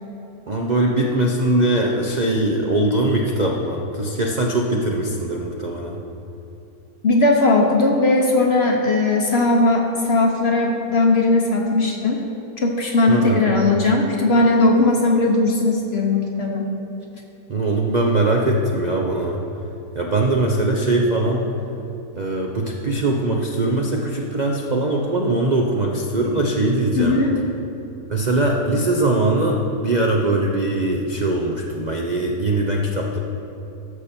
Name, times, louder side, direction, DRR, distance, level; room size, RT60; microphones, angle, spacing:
voice 1, 0.5-6.0 13.1-13.5 17.5-19.4 19.9-21.5 22.1-27.2 28.1-33.2, right 2 dB, 45° right, -1 dB, 0.5 m, -21 dB
voice 2, 7.0-12.2 12.6-16.7 27.0-27.3, left 2 dB, 50° left, 1 dB, 0.9 m, -18 dB
13.0 x 6.8 x 4.4 m, 2.8 s
omnidirectional pair, 1.7 m